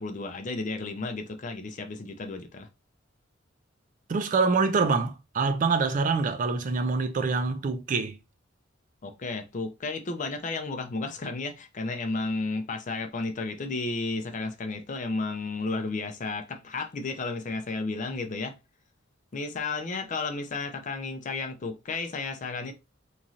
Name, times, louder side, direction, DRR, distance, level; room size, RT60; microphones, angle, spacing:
voice 1, 0.0-2.7 9.0-18.6 19.3-22.7, left 3 dB, 40° left, 0.5 m, -33 dB
voice 2, 4.1-8.2, right 4 dB, 40° right, 0.4 m, -25 dB
3.0 x 2.6 x 2.5 m
head